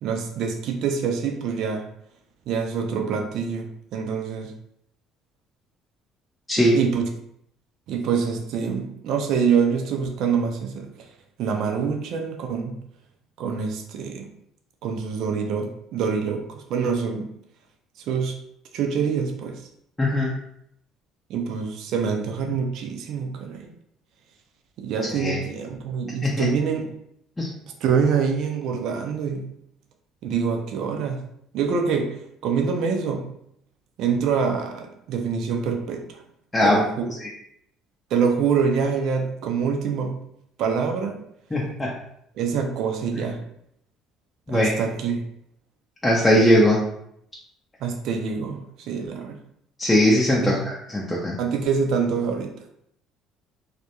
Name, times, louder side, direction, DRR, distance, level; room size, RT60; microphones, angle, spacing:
voice 1, 0.0-1.8 2.5-4.5 6.6-7.1 7.9-11.1 11.4-12.7 13.4-14.3 14.8-17.3 18.1-18.3 18.7-19.6 21.3-23.7 24.8-26.9 27.8-29.4 30.2-31.2 31.5-32.2 32.4-33.3 34.0-36.2 36.6-37.1 38.1-40.2 40.6-41.3 42.4-43.4 44.5-45.2 47.8-49.4 50.4-50.6 51.4-52.5, right 6 dB, 65° right, 4 dB, 0.4 m, -25 dB
voice 2, 20.0-20.3 25.1-25.4 26.2-26.5 27.4-27.5 36.5-36.8 37.2-37.3 41.5-41.9 44.5-44.7 46.0-46.8 49.8-51.4, left 1 dB, 15° left, -4 dB, 0.5 m, -20 dB
2.3 x 2.1 x 2.8 m, 0.72 s
hypercardioid pair, 60°, 0 cm